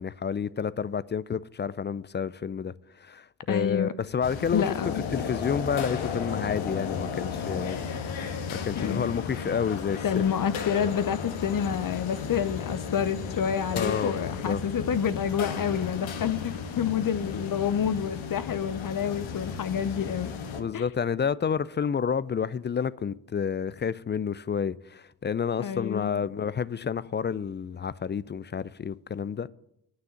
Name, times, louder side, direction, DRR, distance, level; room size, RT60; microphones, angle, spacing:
voice 1, 0.0-4.7 5.1-7.8 8.1-10.0 13.7-14.6 20.6-29.5, left 7 dB, 25° left, 0.4 m, -30 dB
voice 2, 3.5-3.9 4.5-5.0 8.7-9.2 10.0-20.3 20.7-20.8 25.6-26.1, left 8 dB, 45° left, 0.8 m, -28 dB
sound 1, 4.2-20.6, left 6 dB, 70° left, 1.4 m, -34 dB
9.2 x 6.4 x 8.2 m
hypercardioid pair, 45°, 49 cm